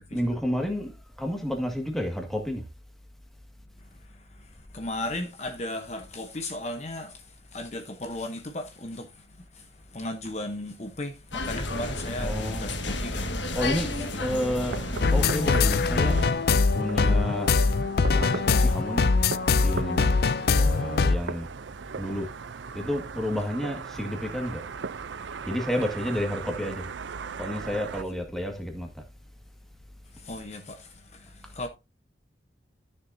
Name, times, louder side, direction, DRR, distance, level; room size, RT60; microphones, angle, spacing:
voice 1, 0.1-0.9 1.2-2.6 12.2-12.7 13.5-13.9 14.2-14.8 15.1-16.2 16.7-17.5 18.1-19.1 19.6-20.1 20.6-21.5 22.0-22.3 22.7-24.6 25.5-26.9 27.4-28.9, equal, ahead, 1.8 m, -30 dB
voice 2, 3.8-13.3 14.0-14.1 30.1-31.7, left 1 dB, 35° left, 0.9 m, -36 dB
sound 1, 11.3-16.3, left 2 dB, 90° left, 1.6 m, -31 dB
sound 2, 14.7-28.0, right 5 dB, 85° right, 0.5 m, -38 dB
sound 3, 15.0-21.2, left 4 dB, 55° left, 0.4 m, -22 dB
13.0 x 6.9 x 2.7 m
head